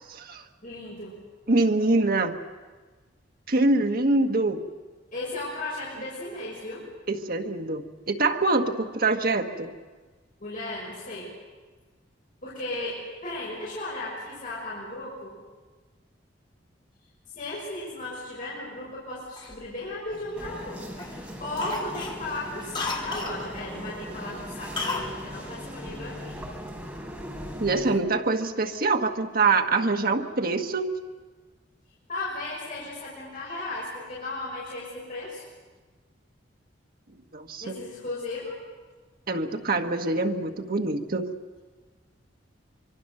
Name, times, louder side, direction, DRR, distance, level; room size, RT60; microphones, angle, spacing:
voice 1, 0.1-0.4 1.5-2.3 3.5-4.6 7.1-9.7 27.6-30.9 37.3-37.8 39.3-41.3, right 3 dB, 50° right, 5 dB, 1.4 m, -24 dB
voice 2, 0.6-1.1 5.1-6.8 10.4-11.3 12.4-15.4 17.4-26.3 32.1-35.4 37.6-38.6, left 2 dB, 50° left, -6 dB, 6.1 m, -35 dB
Cough, 19.4-20.6 21.0-21.2 21.6-23.4 24.8-25.1 25.4-25.5, left 3 dB, 25° left, 2.8 m, -34 dB
sound 1, 20.4-28.0, equal, 5° right, 4.4 m, -39 dB
25.0 x 25.0 x 6.6 m, 1.3 s
head